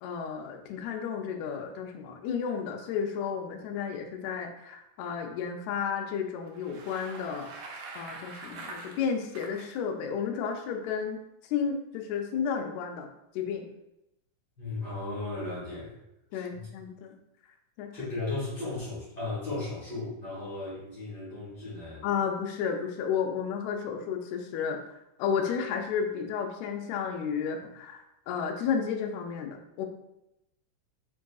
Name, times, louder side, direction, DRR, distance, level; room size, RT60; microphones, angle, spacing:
voice 1, 0.0-7.5 7.9-11.2 11.5-13.1 13.3-13.7 16.3-17.1 17.8-17.9 22.0-29.9, left 7 dB, 80° left, 3 dB, 1.7 m, -32 dB
Bicycle, 6.4-9.7, right 3 dB, 80° right, 1.4 m, -44 dB
voice 2, 14.6-16.0 16.3-16.7 17.9-22.0, left 2 dB, 45° left, -9 dB, 1.6 m, -36 dB
4.6 x 3.6 x 2.3 m, 0.86 s
omnidirectional pair, 3.4 m